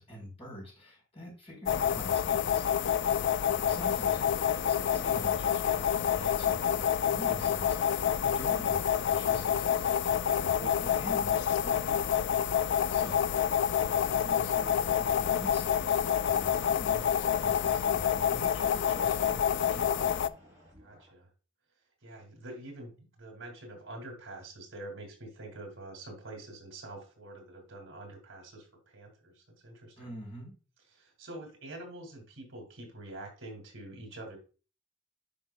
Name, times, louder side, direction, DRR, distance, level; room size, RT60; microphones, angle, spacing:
voice 1, 0.0-2.8 3.5-12.2 12.9-13.5 13.9-20.1 30.0-30.5, equal, 30° left, -2 dB, 3.8 m, -45 dB
sound 1, 1.7-20.3, left 9 dB, 55° left, 0.3 m, -28 dB
voice 2, 12.7-13.1 13.4-13.7 20.8-21.3 22.0-22.9 23.2-30.1 30.9-34.4, right 2 dB, 65° right, 2 dB, 2.4 m, -46 dB
sound 2, 13.5-21.1, left 1 dB, 15° right, 3.9 m, -57 dB
10.0 x 5.3 x 2.3 m, 0.35 s
head